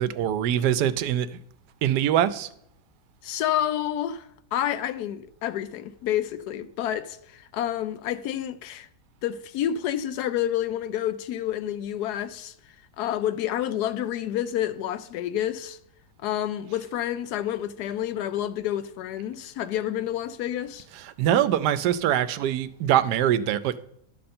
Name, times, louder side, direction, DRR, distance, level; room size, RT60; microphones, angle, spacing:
voice 1, 0.0-1.4 1.8-2.5 21.2-23.8, right 11 dB, 80° right, 1.1 m, -23 dB
voice 2, 3.2-8.9 9.2-12.5 13.0-15.8 16.2-20.8, left 11 dB, 80° left, 1.1 m, -29 dB
11.0 x 6.5 x 4.3 m
omnidirectional pair, 1.7 m